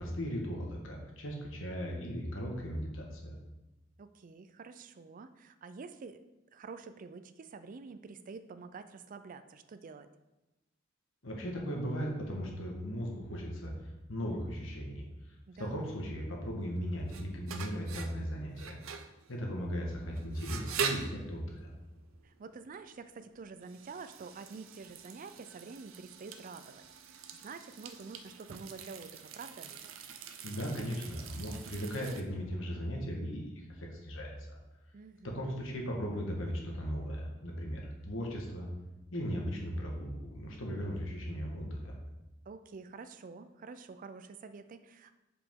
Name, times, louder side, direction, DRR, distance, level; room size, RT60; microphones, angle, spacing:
voice 1, 0.0-3.4 11.2-13.7 14.1-18.8 19.3-21.7 30.4-34.6 35.2-38.7 39.1-42.0, equal, 75° left, 0 dB, 1.4 m, -37 dB
voice 2, 4.0-6.2 6.5-10.1 15.5-15.8 22.2-29.7 34.9-35.5 42.5-45.1, right 4 dB, 45° right, 11 dB, 0.4 m, -48 dB
sound 1, 16.7-32.2, right 6 dB, 90° right, 0.6 m, -43 dB
7.6 x 5.0 x 3.6 m, 1.0 s
head